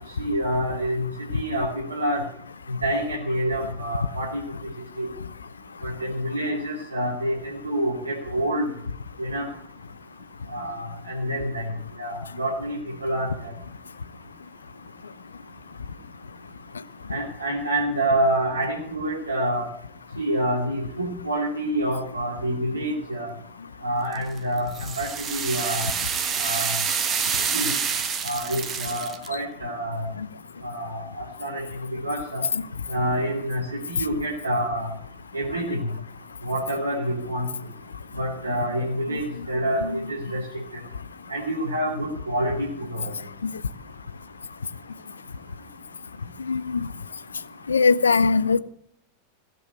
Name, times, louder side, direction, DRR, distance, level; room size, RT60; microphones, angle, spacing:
voice 1, 0.2-2.2 2.7-4.4 5.0-5.1 5.8-8.7 9.2-9.5 10.5-11.7 12.0-13.5 17.1-19.7 20.2-23.3 23.8-25.8 26.4-26.7 27.5-27.8 28.2-30.0 30.6-31.6 31.9-32.4 32.9-34.9 35.3-35.8 36.4-37.5 38.2-40.4 41.3-43.1, right 1 dB, 80° right, 2.7 m, -27 dB
sound 1, 24.1-29.3, right 6 dB, 25° right, 1.4 m, -27 dB
voice 2, 39.1-39.5 39.8-40.0 43.4-43.5 46.4-46.9 47.7-48.6, left 4 dB, 75° left, 0.6 m, -22 dB
16.5 x 7.7 x 7.8 m
figure-of-eight pair, 90°, 0 cm